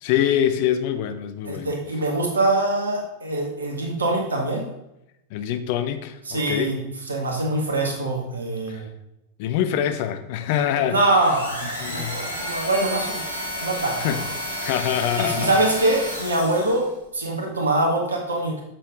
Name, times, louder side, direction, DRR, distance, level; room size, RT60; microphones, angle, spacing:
voice 1, 0.0-1.7 5.3-6.7 8.7-8.8 9.4-11.0 11.6-12.2 14.0-14.2 14.6-15.5, left 10 dB, 50° left, 10 dB, 0.7 m, -24 dB
voice 2, 1.4-4.6 6.3-8.9 10.7-13.3 13.6-14.3 15.2-18.6, right 2 dB, 75° right, 1 dB, 1.8 m, -24 dB
sound 1, 11.1-16.9, equal, 80° left, 1.8 m, -31 dB
7.6 x 6.6 x 3.9 m, 0.89 s
figure-of-eight pair, 90°, 0 cm